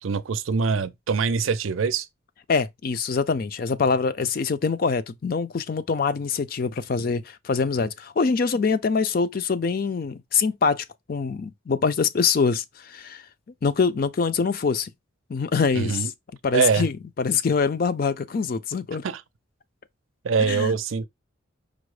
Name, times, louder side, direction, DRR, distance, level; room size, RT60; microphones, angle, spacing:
voice 1, 0.0-2.1 15.7-16.1 16.5-16.9 19.0-19.2 20.2-21.1, right 5 dB, 80° right, 0.5 m, -23 dB
voice 2, 2.5-13.2 13.6-14.9 15.3-16.1 16.4-19.0 20.4-20.7, left 5 dB, 45° left, 0.4 m, -24 dB
5.1 x 2.0 x 4.7 m
head